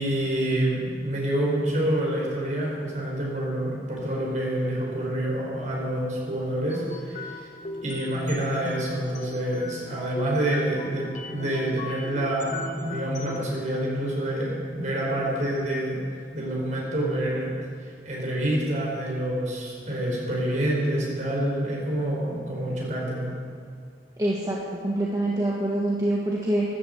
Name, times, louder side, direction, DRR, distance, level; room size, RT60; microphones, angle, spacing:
voice 1, 0.0-7.5 7.8-16.0 16.3-17.5 18.0-23.3, right 1 dB, 45° right, -3 dB, 4.9 m, -27 dB
sound 1, 6.7-13.5, left 2 dB, 45° left, 1.3 m, -38 dB
voice 2, 24.2-26.6, right 1 dB, 20° right, -5 dB, 1.6 m, -25 dB
13.5 x 12.0 x 8.1 m, 2.2 s
head